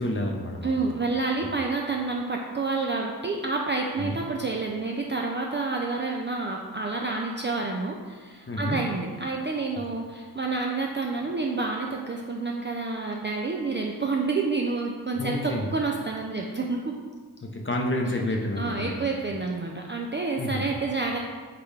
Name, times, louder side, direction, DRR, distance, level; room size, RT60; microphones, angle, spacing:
voice 1, 0.0-0.9 4.0-4.2 8.5-8.8 15.2-15.7 17.4-18.9 20.4-20.6, left 1 dB, 30° left, 0 dB, 0.6 m, -29 dB
voice 2, 0.6-16.9 18.6-21.2, right 3 dB, 30° right, 0 dB, 0.3 m, -29 dB
6.6 x 2.3 x 3.2 m, 1.5 s
wide cardioid pair, 45°, 41 cm